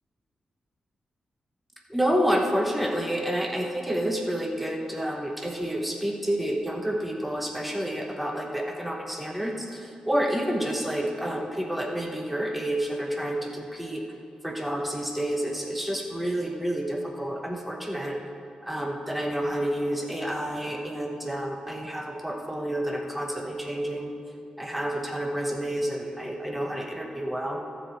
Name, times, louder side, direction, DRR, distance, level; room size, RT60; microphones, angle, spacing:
voice 1, 1.9-14.0 14.4-18.2 18.6-24.1 24.6-27.6, equal, 5° right, 1 dB, 0.9 m, -29 dB
13.0 x 5.0 x 7.6 m, 2.7 s
cardioid pair, 95°, 2 cm